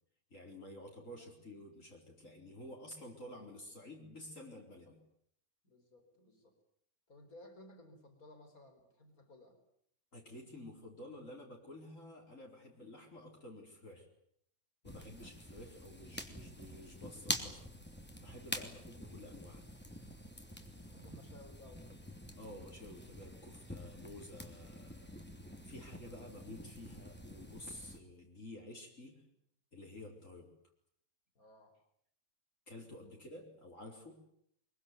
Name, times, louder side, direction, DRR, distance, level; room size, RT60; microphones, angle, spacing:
voice 1, 0.3-5.0 10.1-14.1 14.8-17.7 18.2-19.6 22.4-25.1 25.6-29.2 29.7-30.5 32.7-34.2, left 1 dB, 60° left, -1 dB, 4.8 m, -51 dB
voice 2, 5.6-6.5 7.1-9.6 14.8-15.1 18.5-18.8 20.7-22.1 31.3-31.8, left 1 dB, 75° left, 6 dB, 5.1 m, -58 dB
sound 1, 14.8-28.0, equal, 5° left, 2.9 m, -46 dB
23.5 x 23.0 x 9.7 m, 0.70 s
omnidirectional pair, 1.5 m